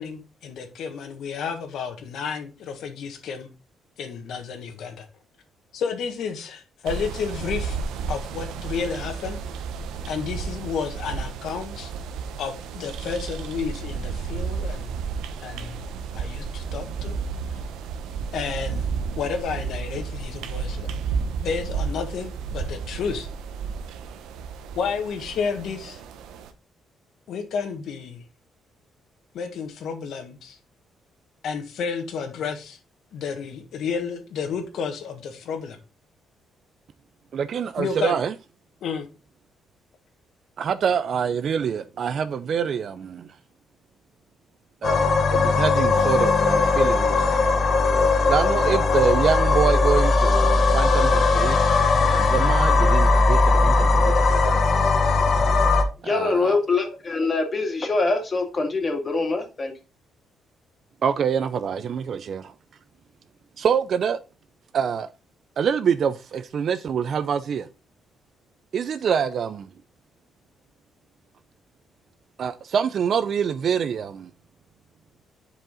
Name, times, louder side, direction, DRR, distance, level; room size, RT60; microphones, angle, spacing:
voice 1, 0.0-3.5 4.0-5.1 5.7-7.8 8.1-9.4 10.1-11.9 12.4-14.9 15.4-15.8 16.1-17.2 17.5-17.6 18.3-18.9 19.1-20.9 21.4-23.3 24.7-26.0 27.3-28.2 29.3-30.6 31.4-32.8 33.1-35.8 37.8-38.2 38.8-39.1, left 6 dB, 75° left, 1.6 m, -31 dB
sound 1, 6.9-26.5, right 5 dB, 90° right, 0.8 m, -32 dB
voice 2, 37.3-38.3 40.6-43.3 44.8-47.4 48.3-51.6 52.0-54.6 56.0-56.6 61.0-62.5 63.6-64.2 64.7-65.1 65.6-67.7 68.7-69.7 72.4-74.3, right 7 dB, 60° right, 0.5 m, -25 dB
sound 2, 44.8-55.8, left 3 dB, 55° left, 1.3 m, -19 dB
voice 3, 56.0-59.7, left 3 dB, 35° left, 2.2 m, -24 dB
7.6 x 4.9 x 3.8 m
cardioid pair, 90°, 0 cm